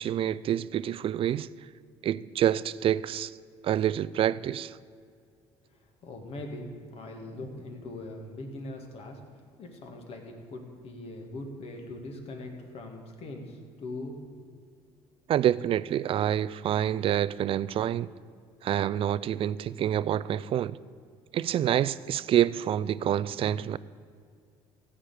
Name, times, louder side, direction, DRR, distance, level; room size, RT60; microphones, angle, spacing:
voice 1, 0.0-1.5 2.0-3.3 3.6-4.8 15.3-18.1 18.6-20.8 21.3-23.8, right 11 dB, 50° right, 0.4 m, -27 dB
voice 2, 5.7-9.2 9.6-14.2, left 2 dB, 55° left, 2.2 m, -41 dB
15.0 x 5.0 x 8.8 m
supercardioid pair, 70°, 12 cm